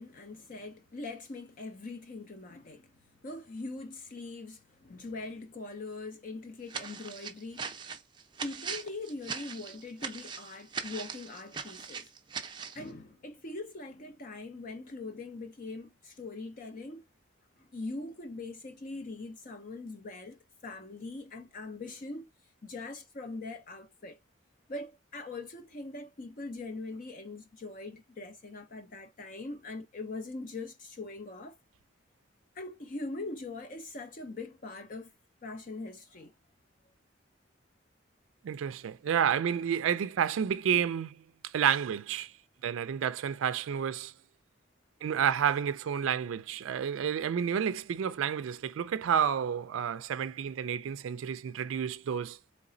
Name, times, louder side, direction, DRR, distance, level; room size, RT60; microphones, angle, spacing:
voice 1, 0.0-2.9 3.2-7.7 8.4-12.1 12.7-17.0 17.6-22.3 22.6-24.2 24.7-31.6 32.5-35.1 35.4-36.3, left 2 dB, 40° left, 0.5 m, -42 dB
sound 1, 6.7-12.8, right 6 dB, 25° right, 0.5 m, -40 dB
voice 2, 38.4-41.2 41.4-42.3 42.6-44.1 45.0-52.4, right 8 dB, 80° right, 0.3 m, -30 dB
4.0 x 3.2 x 3.8 m
head